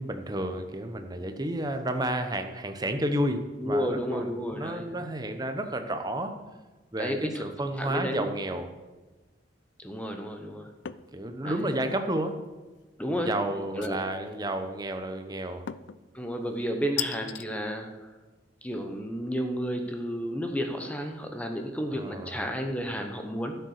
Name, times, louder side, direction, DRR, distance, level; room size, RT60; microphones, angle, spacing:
voice 1, 0.0-6.3 6.9-8.7 11.1-12.4 13.1-15.7 21.9-22.4, right 1 dB, 20° right, 6 dB, 1.0 m, -31 dB
voice 2, 3.6-5.0 7.0-7.4 7.8-8.3 9.8-10.7 11.4-11.6 13.0-13.3 13.8-14.0 16.1-18.1 18.6-23.6, equal, 10° left, 4 dB, 1.0 m, -32 dB
sound 1, 10.8-11.1 11.6-12.1 13.8-14.3 15.7-16.0 17.0-17.5, left 11 dB, 85° left, 0.5 m, -36 dB
12.0 x 6.8 x 6.6 m, 1.2 s
head